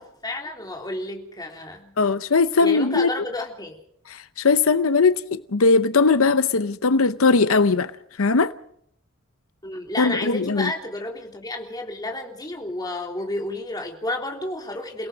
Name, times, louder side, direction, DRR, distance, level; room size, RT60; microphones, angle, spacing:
voice 1, 0.0-2.0 2.6-3.8 9.6-15.1, left 2 dB, 20° left, 3.5 m, -31 dB
voice 2, 2.0-3.1 4.1-7.9 8.2-8.5 10.0-10.7, left 4 dB, 80° left, 0.8 m, -19 dB
29.5 x 18.0 x 5.1 m
head